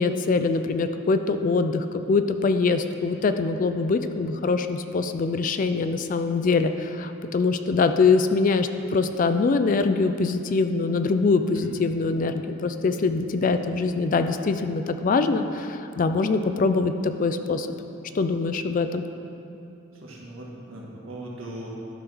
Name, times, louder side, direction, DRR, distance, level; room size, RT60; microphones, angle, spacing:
voice 1, 0.0-17.7 18.1-19.0, left 4 dB, 40° left, 8 dB, 0.3 m, -23 dB
voice 2, 19.9-21.7, right 1 dB, 80° right, -4 dB, 1.7 m, -39 dB
12.0 x 6.1 x 3.4 m, 2.9 s
head